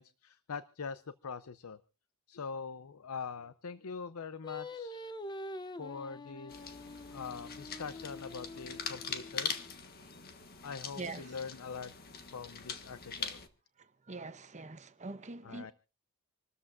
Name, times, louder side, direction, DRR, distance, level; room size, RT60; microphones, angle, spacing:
voice 1, 0.0-1.8 2.3-5.0 5.8-6.7 7.1-9.6 10.6-12.0 12.3-13.4 15.4-15.7, left 5 dB, 90° left, 0.6 m, -43 dB
Singing, 4.4-9.7, left 2 dB, 20° left, 0.7 m, -46 dB
sound 1, 6.5-13.5, left 6 dB, 45° left, 1.6 m, -42 dB
voice 2, 14.1-15.7, right 3 dB, 35° right, 1.0 m, -43 dB
27.5 x 13.5 x 2.5 m
head